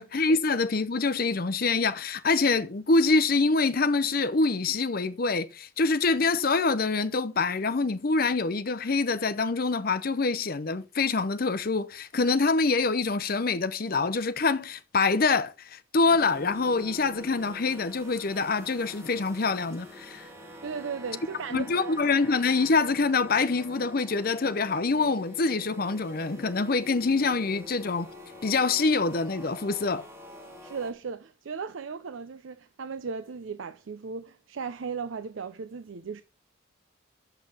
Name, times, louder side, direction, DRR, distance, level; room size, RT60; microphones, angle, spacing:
voice 1, 0.0-20.2 21.5-28.1 28.4-30.1, left 3 dB, 45° left, 0.7 m, -25 dB
sound 1, 16.0-30.9, left 1 dB, 10° right, 2.0 m, -46 dB
voice 2, 20.6-22.0 30.4-36.2, right 5 dB, 75° right, 0.5 m, -36 dB
6.7 x 5.9 x 7.3 m
head